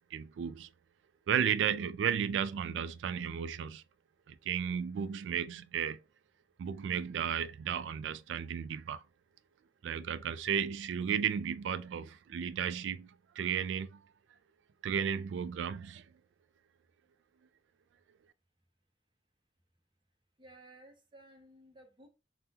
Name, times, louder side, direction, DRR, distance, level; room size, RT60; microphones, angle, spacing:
voice 1, 0.1-0.7 1.3-3.8 4.3-6.0 6.6-9.0 9.8-14.0 14.8-16.1, right 8 dB, 90° right, 0.3 m, -34 dB
voice 2, 20.4-22.1, right 1 dB, 25° right, 0.7 m, -56 dB
3.5 x 2.1 x 2.8 m
head